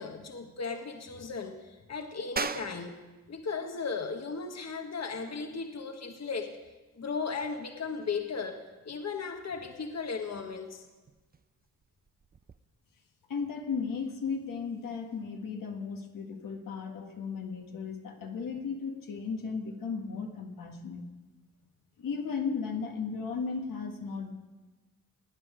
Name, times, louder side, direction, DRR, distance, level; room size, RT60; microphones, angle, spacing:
voice 1, 0.0-2.9 3.3-6.5 7.0-10.9, left 5 dB, 50° left, 5 dB, 1.4 m, -36 dB
sound 1, 2.4-12.6, right 5 dB, 30° right, 0.6 m, -44 dB
voice 2, 13.3-21.1 22.0-24.3, left 5 dB, 75° left, 2 dB, 1.6 m, -35 dB
18.0 x 9.3 x 5.0 m, 1.2 s
supercardioid pair, 50°, 33 cm